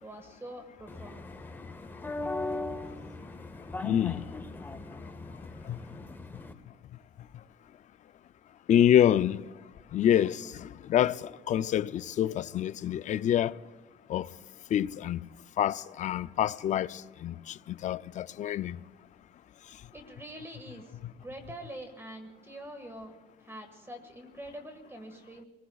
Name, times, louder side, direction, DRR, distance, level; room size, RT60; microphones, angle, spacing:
voice 1, 0.0-1.3 19.9-23.1 23.4-25.4, right 1 dB, 15° right, 1.7 m, -45 dB
sound 1, 0.9-6.5, left 2 dB, 10° left, 0.8 m, -39 dB
voice 2, 3.8-4.2 5.7-5.8 8.7-9.4 9.9-13.5 14.1-14.3 14.7-15.2 15.6-18.8, left 10 dB, 45° left, 0.4 m, -27 dB
27.0 x 20.0 x 2.3 m
cardioid pair, 110°, 17 cm